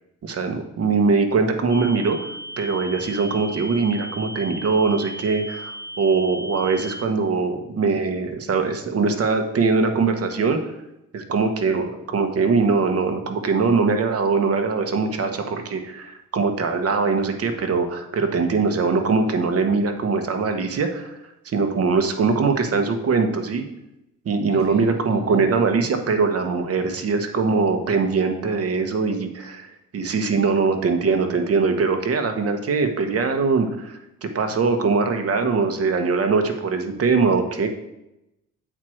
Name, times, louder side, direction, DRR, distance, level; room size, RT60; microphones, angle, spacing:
voice 1, 0.2-5.7 6.0-10.6 11.1-21.2 21.4-23.6 24.2-29.7 29.9-33.9 34.2-37.7, right 4 dB, 50° right, 6 dB, 1.3 m, -22 dB
sound 1, 1.7-7.0, equal, 10° left, 0.6 m, -36 dB
voice 2, 24.5-25.6, left 3 dB, 45° left, -2 dB, 2.9 m, -36 dB
8.1 x 4.5 x 6.3 m, 0.88 s
cardioid pair, 90°, 30 cm